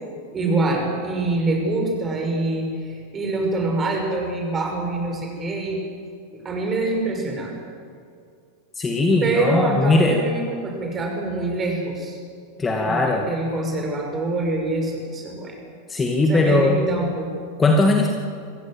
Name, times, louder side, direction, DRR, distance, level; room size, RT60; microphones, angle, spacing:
voice 1, 0.3-5.8 6.3-7.6 9.2-12.2 12.8-15.6 16.3-17.3, right 2 dB, 20° right, 1 dB, 6.0 m, -25 dB
voice 2, 8.8-10.2 12.6-13.3 15.9-16.8 17.6-18.1, left 2 dB, 15° left, 1 dB, 2.2 m, -19 dB
26.5 x 16.0 x 7.8 m, 2.3 s
figure-of-eight pair, 90°, 0 cm